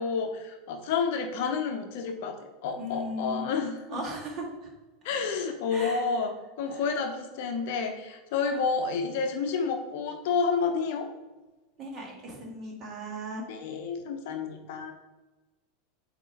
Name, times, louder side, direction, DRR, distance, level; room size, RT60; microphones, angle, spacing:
voice 1, 0.0-4.0 5.0-11.1 13.5-14.9, left 5 dB, 55° left, 5 dB, 0.8 m, -30 dB
voice 2, 2.8-3.5 3.9-4.5 5.7-6.0 6.6-6.8 11.8-13.5, equal, 35° right, -1 dB, 1.9 m, -37 dB
8.3 x 3.0 x 4.3 m, 1.1 s
figure-of-eight pair, 85°, 0 cm